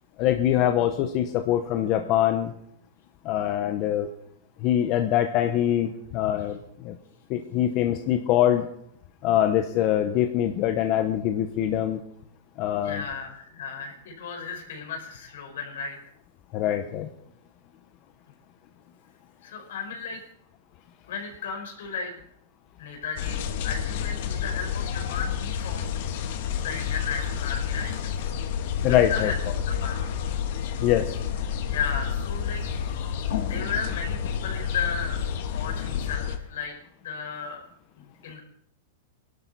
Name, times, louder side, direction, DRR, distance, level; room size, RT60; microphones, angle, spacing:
voice 1, 0.2-2.5 3.2-4.1 4.6-7.0 7.3-8.7 9.2-12.0 12.6-13.0 16.5-17.1 28.8-29.3 30.8-31.1, left 11 dB, 45° left, 6 dB, 0.9 m, -24 dB
voice 2, 12.8-16.0 19.4-20.2 21.1-22.2 22.8-25.9 26.6-28.1 28.8-29.4 29.7-30.0 31.7-32.6 33.3-35.2 35.5-36.7 37.0-37.6 38.0-38.4, left 5 dB, 80° left, 2 dB, 4.6 m, -34 dB
sound 1, 23.2-36.4, left 8 dB, 60° left, 1.6 m, -29 dB
21.0 x 12.0 x 4.1 m, 0.71 s
supercardioid pair, 140°, 0 cm